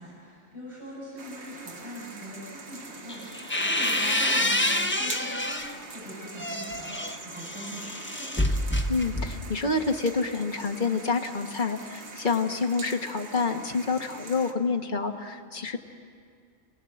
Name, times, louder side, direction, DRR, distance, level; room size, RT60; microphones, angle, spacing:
voice 1, 0.0-8.3, equal, 20° right, -7 dB, 7.4 m, -42 dB
sound 1, 1.2-14.5, right 3 dB, 55° right, 1.7 m, -44 dB
sound 2, 3.1-5.8 6.2-9.6, left 1 dB, 10° left, 0.8 m, -28 dB
sound 3, 3.3-5.8, right 1 dB, 85° right, 7.8 m, -45 dB
voice 2, 8.9-15.8, left 4 dB, 40° left, 3 dB, 1.4 m, -28 dB
29.0 x 18.5 x 7.9 m, 2.2 s
omnidirectional pair, 1.4 m